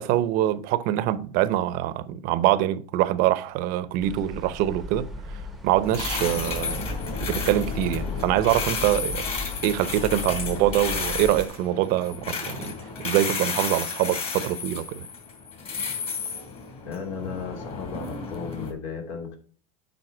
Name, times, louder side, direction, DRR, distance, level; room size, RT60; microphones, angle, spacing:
voice 1, 0.0-5.1 5.3-6.9 7.2-9.3 9.6-12.7 13.0-15.1, right 13 dB, 55° right, 0.8 m, -24 dB
sound 1, 4.0-11.5, left 2 dB, ahead, 1.0 m, -36 dB
sound 2, 5.8-18.7, left 5 dB, 35° left, 3.4 m, -32 dB
voice 2, 16.8-19.4, left 6 dB, 65° left, 2.9 m, -35 dB
8.0 x 5.5 x 4.4 m
supercardioid pair, 120°, 18 cm